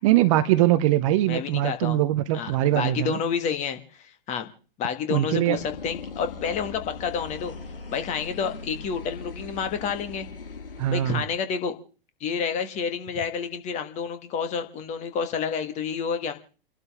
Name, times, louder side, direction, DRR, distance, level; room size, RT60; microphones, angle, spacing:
voice 1, 0.0-3.2 5.1-5.6 10.8-11.2, right 14 dB, 35° right, 0.8 m, -22 dB
voice 2, 1.3-2.0 2.3-4.5 4.8-7.6 7.9-10.3 10.9-11.7 12.2-16.4, left 6 dB, 25° left, 1.8 m, -29 dB
sound 1, 5.5-11.3, left 4 dB, 70° left, 2.0 m, -39 dB
30.0 x 12.0 x 3.6 m
figure-of-eight pair, 110°, 29 cm